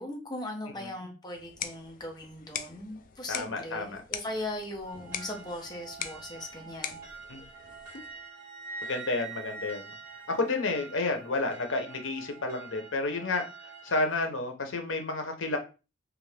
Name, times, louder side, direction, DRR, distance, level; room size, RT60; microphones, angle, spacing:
voice 1, 0.0-7.0, left 1 dB, 20° left, 0.8 m, -39 dB
sound 1, 1.3-8.3, left 8 dB, 45° left, 0.4 m, -42 dB
voice 2, 3.3-4.0 7.3-7.4 8.9-9.8 10.3-13.4 13.8-15.6, left 3 dB, 85° left, 0.8 m, -30 dB
sound 2, 4.8-14.3, right 5 dB, 10° right, 1.9 m, -49 dB
Wind instrument woodwind instrument, 7.6-11.1, right 3 dB, 35° right, 0.6 m, -44 dB
3.1 x 2.5 x 3.3 m
head